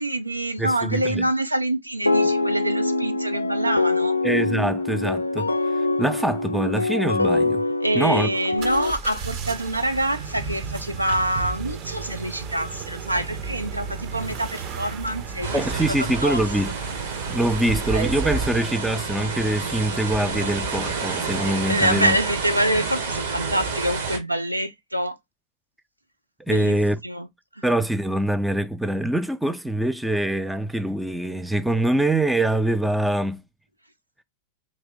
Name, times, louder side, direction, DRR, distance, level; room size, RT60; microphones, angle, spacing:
voice 1, 0.0-4.2 7.8-16.4 21.7-25.2 26.5-27.3 27.5-27.6, right 1 dB, 85° right, 0.4 m, -26 dB
voice 2, 0.6-1.3 4.2-7.6 7.9-8.3 15.5-16.7 17.3-22.2 26.4-27.0 27.6-33.4, right 1 dB, 5° right, 0.4 m, -24 dB
sound 1, 2.1-8.9, left 2 dB, 85° left, 0.3 m, -24 dB
sound 2, 8.6-18.7, right 5 dB, 40° right, 0.7 m, -34 dB
sound 3, 15.4-24.2, right 4 dB, 65° right, 1.0 m, -29 dB
3.1 x 2.7 x 3.6 m
figure-of-eight pair, 90°, 0 cm